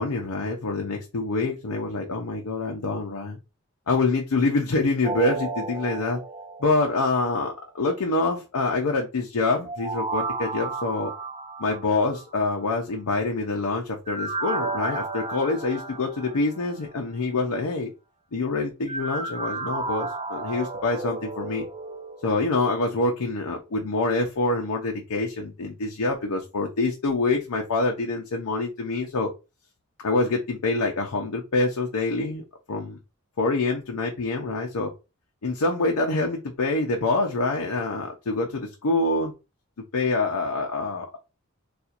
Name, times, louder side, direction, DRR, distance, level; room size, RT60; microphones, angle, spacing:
voice 1, 0.0-3.4 3.9-6.2 6.6-11.1 11.6-17.9 18.3-21.7 22.2-29.3 30.0-33.0 33.4-34.9 35.4-39.3 39.9-41.2, left 3 dB, 90° left, 1 dB, 0.6 m, -26 dB
sound 1, 5.0-7.3 9.6-12.6 14.1-16.8 18.9-23.3 23.7-23.8, right 3 dB, 25° right, 0.7 m, -33 dB
4.2 x 2.4 x 2.4 m, 0.28 s
head